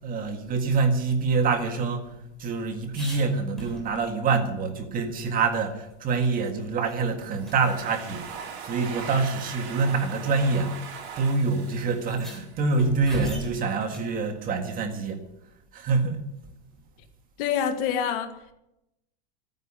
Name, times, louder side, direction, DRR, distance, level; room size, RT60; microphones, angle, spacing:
voice 1, 0.0-10.9 11.2-15.2 15.7-16.2, right 4 dB, 25° right, 5 dB, 1.8 m, -26 dB
sound 1, 1.3-4.3 4.7-4.8 5.1-6.5 6.9-7.0 7.4-7.6 8.6-8.7 9.6-9.9 10.9-11.0 11.3-11.4 11.9-14.1 16.4-16.9, equal, ahead, 3.6 m, -42 dB
Domestic sounds home sounds, 7.2-12.8, right 6 dB, 65° right, 4.4 m, -40 dB
voice 2, 17.4-18.5, left 8 dB, 50° left, 7 dB, 1.8 m, -27 dB
14.0 x 9.5 x 8.8 m, 0.86 s
supercardioid pair, 155°, 34 cm